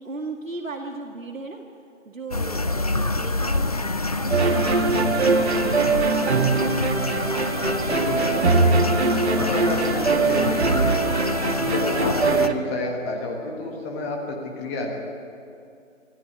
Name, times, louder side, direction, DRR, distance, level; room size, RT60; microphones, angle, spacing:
voice 1, 0.0-1.6 2.1-3.9 4.2-6.5, right 3 dB, 85° right, 3 dB, 2.0 m, -36 dB
sound 1, 2.3-12.5, left 2 dB, 30° left, 0.6 m, -27 dB
sound 2, 4.3-12.5, right 3 dB, 55° right, 1.7 m, -22 dB
voice 2, 7.8-11.1 11.6-14.9, left 2 dB, 10° left, 1 dB, 1.5 m, -30 dB
25.0 x 14.5 x 8.7 m, 2.5 s
figure-of-eight pair, 155°, 39 cm